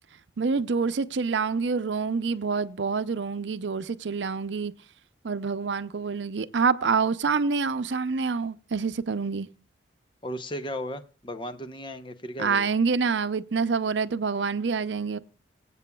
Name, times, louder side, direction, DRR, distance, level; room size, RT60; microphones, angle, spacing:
voice 1, 0.4-4.7 5.2-9.5 12.4-15.2, right 5 dB, 85° right, 0.6 m, -27 dB
voice 2, 10.2-12.8, equal, 25° left, 0.7 m, -35 dB
24.5 x 8.3 x 2.3 m
head